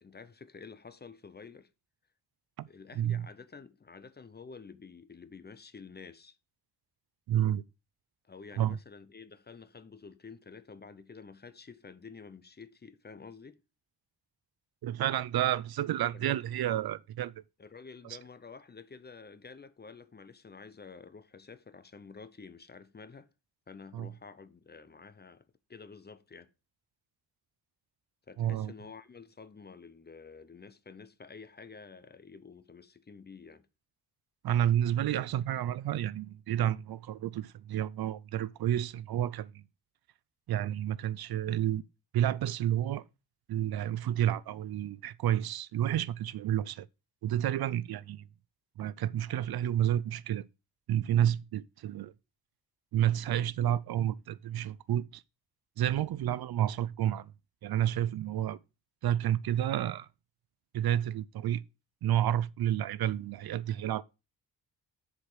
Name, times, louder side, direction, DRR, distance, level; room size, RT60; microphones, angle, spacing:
voice 1, 0.0-1.7 2.7-6.4 8.2-13.6 16.1-16.4 17.6-23.3 23.7-25.4 25.7-26.5 28.3-33.7, left 5 dB, 25° left, 0.6 m, -50 dB
voice 2, 3.0-3.3 7.3-7.6 8.6-8.8 14.8-17.3 18.0-18.2 23.9-24.1 28.4-28.7 34.4-39.6 40.5-41.8 42.1-43.0 43.5-46.9 47.2-48.2 48.8-50.4 50.9-52.1 52.9-55.2 55.8-57.3 57.6-58.6 59.0-60.1 60.7-61.6 62.0-64.0, right 11 dB, 75° right, 0.5 m, -30 dB
6.9 x 4.9 x 6.3 m
wide cardioid pair, 140°, 38 cm